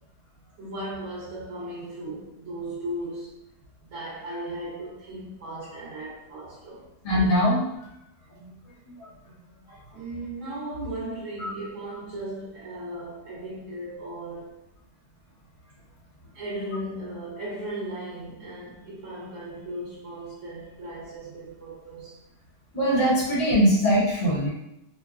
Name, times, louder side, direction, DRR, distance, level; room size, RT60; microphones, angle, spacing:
voice 1, 0.6-3.4 3.8-6.9 9.9-14.6 16.3-22.2, right 1 dB, 60° right, -8 dB, 1.0 m, -36 dB
voice 2, 7.0-7.6 8.4-8.5 8.9-9.1 11.4-11.5 22.7-24.5, equal, 65° left, -10 dB, 1.4 m, -22 dB
3.2 x 2.1 x 2.4 m, 0.86 s
omnidirectional pair, 1.7 m